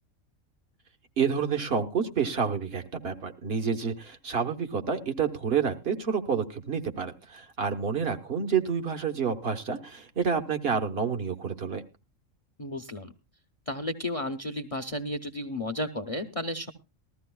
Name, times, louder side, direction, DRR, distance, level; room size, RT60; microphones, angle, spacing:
voice 1, 1.2-11.8, right 6 dB, 50° right, 5 dB, 1.3 m, -29 dB
voice 2, 12.6-13.1 13.7-16.7, left 1 dB, 35° left, 9 dB, 0.7 m, -33 dB
19.5 x 14.0 x 2.3 m, 0.27 s
omnidirectional pair, 1.3 m